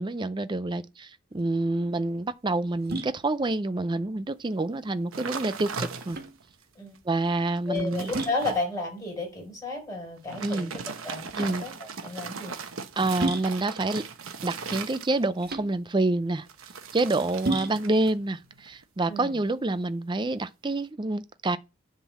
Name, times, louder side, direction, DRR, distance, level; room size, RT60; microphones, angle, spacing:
voice 1, 0.0-6.2 7.1-8.1 10.4-10.7 11.4-11.7 13.0-14.1 14.4-16.5 16.9-21.6, right 2 dB, 20° right, 0.5 m, -27 dB
sound 1, 1.3-19.9, right 2 dB, 50° right, 1.6 m, -38 dB
sound 2, 5.1-6.4 6.9-7.0 7.5-8.6 10.2-15.4 16.5-18.2 18.4-18.8, right 5 dB, 75° right, 1.0 m, -38 dB
voice 2, 7.7-10.7 11.0-12.5 19.1-19.3, left 2 dB, 15° left, 4.3 m, -33 dB
10.0 x 3.8 x 7.0 m
head